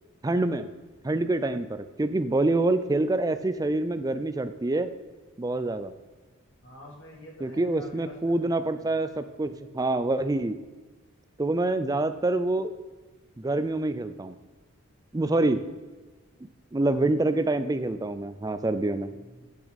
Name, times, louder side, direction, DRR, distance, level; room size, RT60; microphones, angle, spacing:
voice 1, 0.2-0.7 1.0-4.9 5.4-5.9 7.4-10.6 11.4-12.7 13.4-14.4 15.1-15.6 16.7-19.1, right 2 dB, 15° right, 11 dB, 0.4 m, -26 dB
voice 2, 6.6-8.9 16.9-17.4 19.1-19.5, left 1 dB, 60° left, -2 dB, 2.5 m, -48 dB
10.5 x 6.0 x 4.1 m, 1.3 s
head